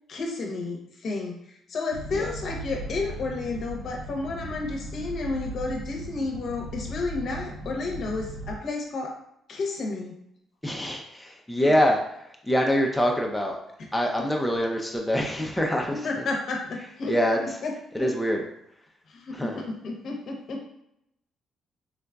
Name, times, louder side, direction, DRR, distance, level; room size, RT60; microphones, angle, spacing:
voice 1, 0.1-1.4 1.7-9.1 9.5-10.2 11.6-11.7 14.2-14.3 15.9-17.2 17.4-18.1 19.1-20.6, left 3 dB, 60° left, 1 dB, 0.7 m, -31 dB
sound 1, 1.9-8.6, right 1 dB, 85° right, 0.6 m, -37 dB
voice 2, 10.6-13.6 13.9-16.3 17.1-17.4 17.9-18.4 19.3-19.6, equal, 5° left, 0 dB, 0.5 m, -25 dB
3.8 x 2.4 x 2.2 m, 0.77 s
cardioid pair, 90°, 0 cm